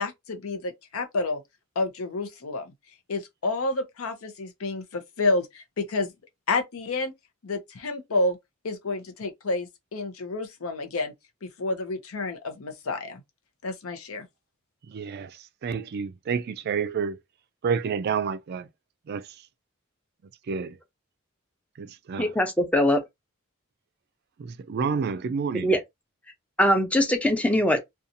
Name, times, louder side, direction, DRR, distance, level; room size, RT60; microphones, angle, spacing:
voice 1, 0.0-1.4 1.8-2.7 3.1-6.1 6.5-7.1 7.4-8.4 8.6-11.1 11.4-13.2 13.6-14.3, left 2 dB, 85° left, 0.7 m, -29 dB
voice 2, 14.9-15.3 15.6-17.2 17.6-18.7 19.1-19.3 20.5-20.8 21.8-22.3 24.4-25.7, right 6 dB, 50° right, 0.3 m, -29 dB
voice 3, 22.2-23.0 25.6-25.8 26.6-27.8, left 1 dB, 5° left, 0.5 m, -22 dB
2.7 x 2.3 x 2.5 m
head